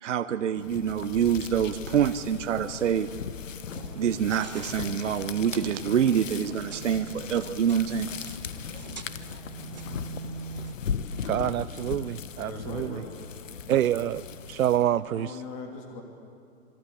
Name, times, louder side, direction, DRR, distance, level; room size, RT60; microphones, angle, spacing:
voice 1, 0.0-3.1 3.9-8.4, right 8 dB, 60° right, 10 dB, 0.9 m, -26 dB
sound 1, 0.5-15.0, left 7 dB, 65° left, 1.4 m, -38 dB
sound 2, 3.7-10.7, right 6 dB, 35° right, 0.5 m, -44 dB
voice 2, 11.2-13.0 13.7-15.4, right 11 dB, 80° right, 15 dB, 0.6 m, -27 dB
voice 3, 12.4-13.2 15.1-16.0, left 4 dB, 25° left, 2 dB, 3.0 m, -40 dB
26.5 x 21.0 x 8.5 m, 2.4 s
hypercardioid pair, 180°, 41 cm